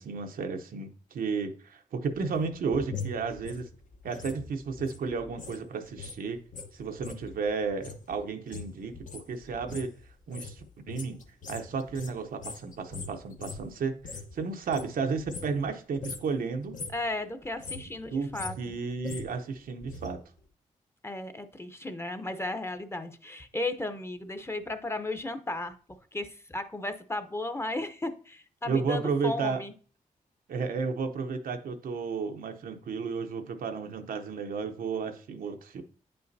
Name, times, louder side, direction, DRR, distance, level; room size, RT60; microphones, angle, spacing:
voice 1, 0.0-3.7 4.0-6.4 6.7-9.9 10.3-11.2 11.5-14.0 14.3-16.8 17.9-18.3 18.6-20.2 28.7-29.6 30.5-35.8, right 5 dB, 85° right, 0.8 m, -33 dB
sound 1, 2.0-5.6 5.9-14.4 14.6-15.7 16.0-16.3 16.6-17.1 17.4-20.1 20.4-20.5, left 4 dB, 65° left, 1.2 m, -42 dB
voice 2, 16.9-18.8 21.0-25.8 26.1-29.7, left 2 dB, 15° left, 0.8 m, -35 dB
8.7 x 5.5 x 2.7 m
cardioid pair, 70°, 14 cm